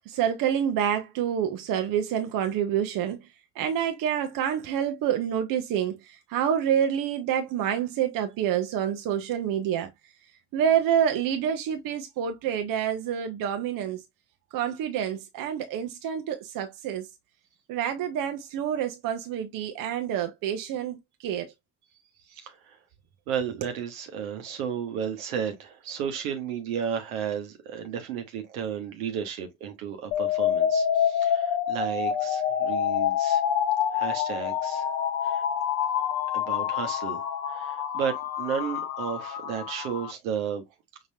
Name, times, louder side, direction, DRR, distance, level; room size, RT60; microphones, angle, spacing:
voice 1, 0.0-3.3 3.6-9.9 10.5-14.0 14.5-17.1 17.7-21.5, right 9 dB, 50° right, 0.8 m, -27 dB
voice 2, 22.3-22.8 23.3-33.4 33.9-34.9 35.2-35.4 36.3-40.6, right 8 dB, 70° right, 1.2 m, -33 dB
sound 1, 30.1-40.1, left 9 dB, 60° left, 1.0 m, -27 dB
5.7 x 2.9 x 2.8 m
figure-of-eight pair, 45°, 42 cm